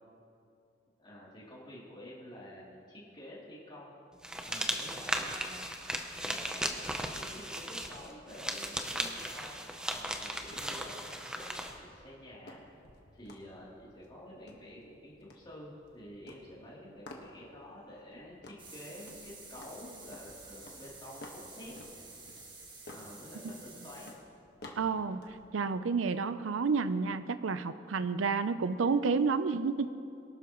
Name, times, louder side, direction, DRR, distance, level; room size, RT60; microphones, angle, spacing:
voice 1, 1.0-3.9 4.4-5.6 6.2-6.8 7.1-9.5 9.9-12.6 13.1-22.1 22.9-24.1, left 1 dB, 25° left, -6 dB, 3.1 m, -49 dB
sound 1, 4.2-11.7, right 1 dB, 5° right, 0.7 m, -37 dB
sound 2, 9.9-25.5, left 1 dB, 55° left, 1.5 m, -55 dB
sound 3, 18.6-24.1, right 3 dB, 25° right, 1.8 m, -51 dB
voice 2, 24.8-29.9, right 4 dB, 85° right, 12 dB, 0.5 m, -30 dB
23.0 x 12.0 x 3.1 m, 2.6 s
head